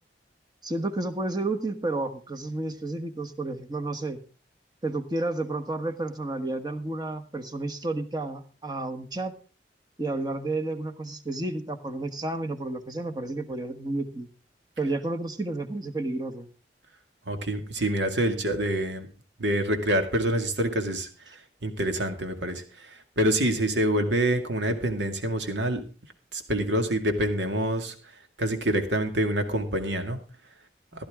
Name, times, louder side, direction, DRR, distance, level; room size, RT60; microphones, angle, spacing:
voice 1, 0.6-4.2 4.8-9.3 10.0-14.3 14.8-16.5, right 2 dB, 25° right, 6 dB, 1.3 m, -31 dB
voice 2, 17.3-19.1 19.4-21.1 21.6-22.9 23.2-25.8 26.3-27.9 28.4-30.2, right 1 dB, 85° right, 6 dB, 2.2 m, -26 dB
15.5 x 11.5 x 3.6 m, 0.35 s
head